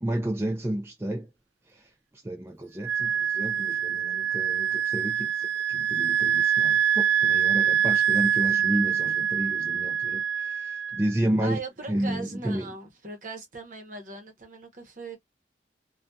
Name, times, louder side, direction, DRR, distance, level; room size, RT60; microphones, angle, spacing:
voice 1, 0.0-1.3 1.7-1.9 2.2-11.6 11.9-12.7, right 1 dB, 15° right, 0.4 m, -31 dB
Wind instrument woodwind instrument, 2.8-11.1, right 9 dB, 85° right, 0.3 m, -25 dB
voice 2, 11.4-15.2, right 3 dB, 45° right, 0.9 m, -39 dB
2.6 x 2.3 x 2.3 m
head